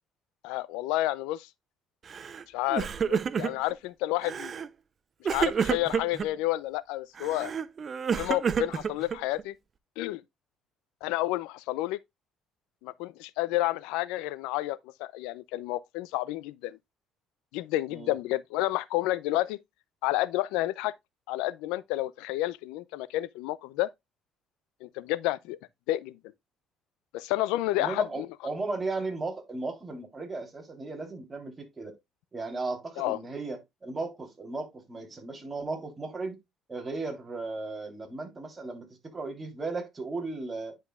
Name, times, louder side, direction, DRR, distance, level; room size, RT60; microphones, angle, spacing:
voice 1, 0.4-1.5 2.5-4.5 5.2-7.5 8.1-9.5 10.0-10.2 11.0-12.0 12.8-16.8 17.5-19.6 20.0-21.0 21.3-23.9 24.8-25.6 25.9-26.2 27.1-28.3 33.0-33.2, left 16 dB, 90° left, 0.5 m, -30 dB
Crying sobbing, 2.1-2.4 2.7-3.7 4.2-4.7 5.2-6.3 7.2-9.4, right 6 dB, 40° right, 0.6 m, -29 dB
voice 2, 27.7-31.9 32.3-36.4 36.7-38.9 39.1-40.8, right 3 dB, 25° right, 3.5 m, -36 dB
10.0 x 5.3 x 2.4 m
cardioid pair, 90°, 0 cm